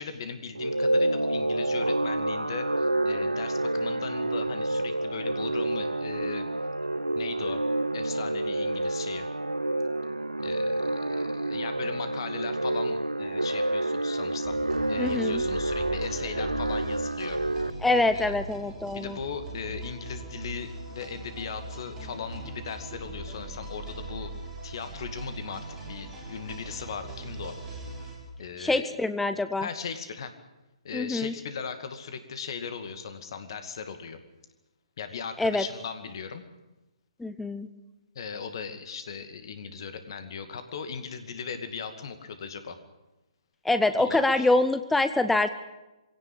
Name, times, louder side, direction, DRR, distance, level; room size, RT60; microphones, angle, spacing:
voice 1, 0.0-6.5 7.2-7.6 7.9-9.3 10.4-14.6 14.9-17.4 17.9-18.4 18.9-24.3 24.6-27.6 28.4-28.9 29.6-30.3 30.8-34.2 35.0-36.4 38.1-42.8 44.0-44.5, left 6 dB, 50° left, 9 dB, 2.3 m, -38 dB
sound 1, 0.5-17.7, right 1 dB, 85° right, 0.7 m, -28 dB
sound 2, 14.4-28.2, right 2 dB, 15° right, 6.9 m, -40 dB
voice 2, 15.0-15.4 17.8-19.2 28.6-29.7 30.9-31.3 35.4-35.6 37.2-37.7 43.6-45.5, left 2 dB, 5° left, 11 dB, 0.7 m, -25 dB
23.0 x 17.0 x 8.8 m, 1.0 s
figure-of-eight pair, 130°, 3 cm